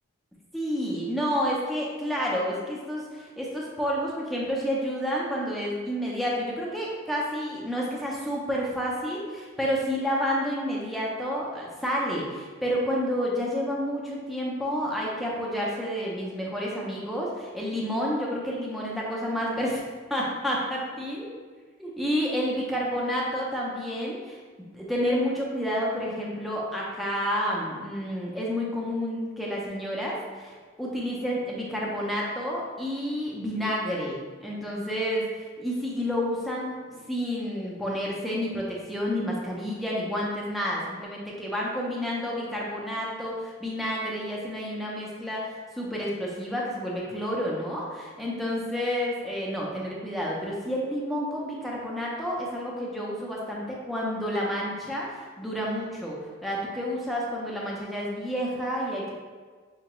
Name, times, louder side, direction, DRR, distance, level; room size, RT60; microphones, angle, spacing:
voice 1, 0.5-19.8 20.1-21.3 21.8-24.4 24.7-59.1, equal, ahead, -4 dB, 0.4 m, -30 dB
4.8 x 2.3 x 2.9 m, 1.5 s
head